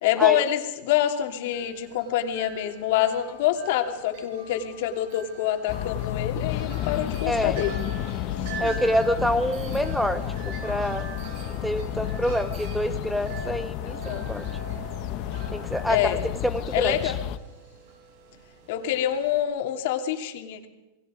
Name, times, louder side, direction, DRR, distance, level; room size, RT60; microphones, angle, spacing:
voice 1, 0.0-7.7 8.6-8.7 13.8-14.3 15.9-16.2 16.7-17.2 18.7-20.7, left 11 dB, 60° left, 5 dB, 2.9 m, -26 dB
Wind chime, 1.5-19.4, right 5 dB, 55° right, 4.4 m, -43 dB
sound 1, 5.7-17.4, left 12 dB, 40° left, 1.0 m, -32 dB
voice 2, 7.3-7.6 8.6-11.0 11.5-14.5 15.5-17.0, equal, ahead, 12 dB, 0.7 m, -27 dB
29.0 x 21.0 x 5.1 m, 1.0 s
supercardioid pair, 155°, 0 cm